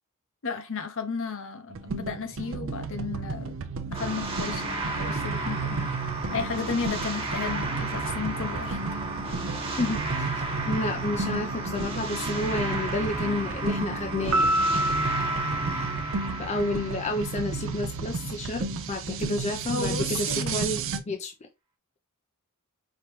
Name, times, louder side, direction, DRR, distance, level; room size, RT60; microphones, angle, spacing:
voice 1, 0.4-3.5 3.9-5.9 6.3-8.8 19.7-20.7, left 5 dB, 60° left, 0.9 m, -33 dB
sound 1, 1.7-21.0, right 4 dB, 60° right, 0.6 m, -33 dB
sound 2, 3.9-18.3, right 2 dB, 25° right, 1.2 m, -34 dB
voice 2, 10.7-14.5 16.4-21.3, left 2 dB, 30° left, 0.4 m, -30 dB
Piano, 14.3-16.9, equal, 80° right, 0.9 m, -27 dB
5.0 x 3.0 x 3.0 m
head